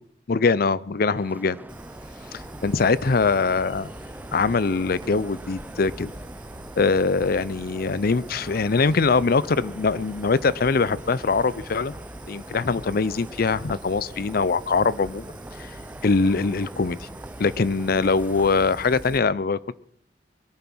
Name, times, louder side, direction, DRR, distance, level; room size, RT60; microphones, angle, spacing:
voice 1, 0.3-1.6 2.6-3.9 4.3-6.1 6.8-11.9 12.3-15.2 15.6-15.7 16.0-17.1 17.4-19.7, left 4 dB, 55° left, 19 dB, 0.5 m, -22 dB
sound 1, 1.1-18.7, right 1 dB, 10° right, 0.6 m, -43 dB
Fire, 1.7-19.2, right 1 dB, 25° right, 1.5 m, -43 dB
22.0 x 10.5 x 6.2 m, 0.64 s
head